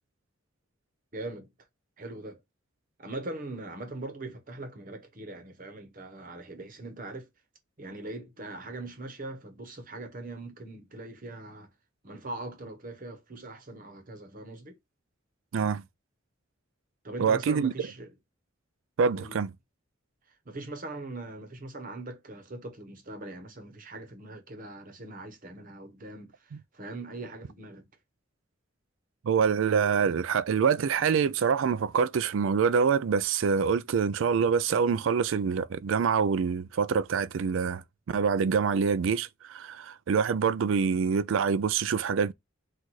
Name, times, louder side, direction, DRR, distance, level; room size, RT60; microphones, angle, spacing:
voice 1, 1.1-1.5 2.0-2.4 3.0-7.3 7.8-11.7 12.0-14.8 17.0-18.1 19.1-19.4 20.3-27.9, right 2 dB, 40° right, 0.9 m, -41 dB
voice 2, 15.5-15.8 17.2-17.7 19.0-19.5 29.2-42.3, right 6 dB, 70° right, 0.4 m, -25 dB
4.1 x 2.5 x 4.6 m
head